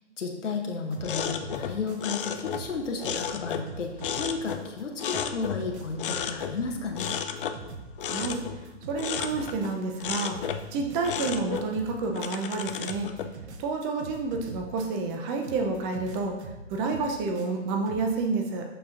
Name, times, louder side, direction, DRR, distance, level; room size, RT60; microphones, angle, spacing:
voice 1, 0.2-3.9 4.2-7.2, left 4 dB, 80° left, 2 dB, 0.9 m, -33 dB
sound 1, 0.9-2.3 2.5-4.8 5.1-10.0 10.3-12.6 12.8-15.2 15.4-18.0, right 4 dB, 65° right, 0.9 m, -44 dB
sound 2, 1.0-3.7 4.0-5.7 6.0-6.6 6.9-9.7 10.0-10.7 11.0-13.3, left 8 dB, 50° left, 0.4 m, -33 dB
voice 2, 8.0-8.4 8.9-10.4 10.7-13.1 13.6-16.4 16.7-18.6, right 3 dB, 20° right, 3 dB, 0.6 m, -29 dB
6.8 x 5.6 x 2.5 m, 1.1 s
hypercardioid pair, 130°, 36 cm